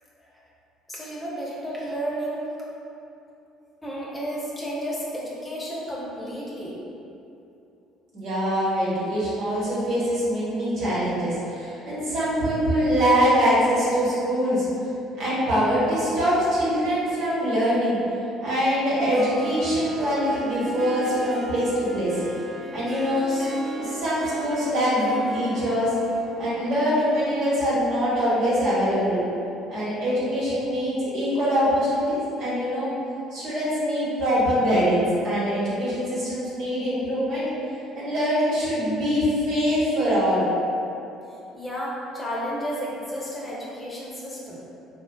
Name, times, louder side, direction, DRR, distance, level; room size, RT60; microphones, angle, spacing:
voice 1, 0.9-2.4 3.8-6.8 41.5-44.6, equal, 20° left, -6 dB, 0.8 m, -32 dB
voice 2, 8.1-14.7 15.2-18.0 18.4-22.1 22.7-25.9 26.4-29.2 29.7-32.9 33.3-37.4 37.9-40.5, equal, 65° right, -9 dB, 1.2 m, -23 dB
Harp, 18.9-27.8, right 2 dB, 40° right, 0.4 m, -38 dB
3.9 x 2.5 x 2.3 m, 2.8 s
hypercardioid pair, 65°, 0 cm